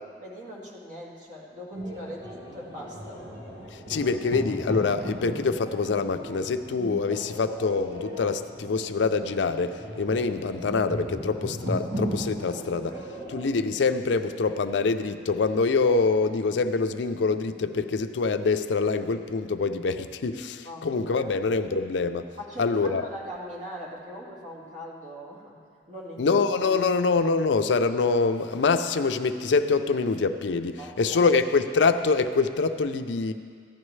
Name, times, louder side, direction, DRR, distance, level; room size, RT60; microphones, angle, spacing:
voice 1, 0.2-3.2 20.6-21.3 22.4-25.6 25.9-26.4 30.8-31.3, equal, 45° right, -4 dB, 2.0 m, -41 dB
sound 1, 1.7-13.5, equal, 75° right, 1.7 m, -37 dB
voice 2, 3.9-13.0 13.3-22.3 22.6-23.0 26.2-33.3, left 4 dB, 85° left, 9 dB, 0.5 m, -25 dB
14.5 x 11.0 x 3.2 m, 2.1 s
head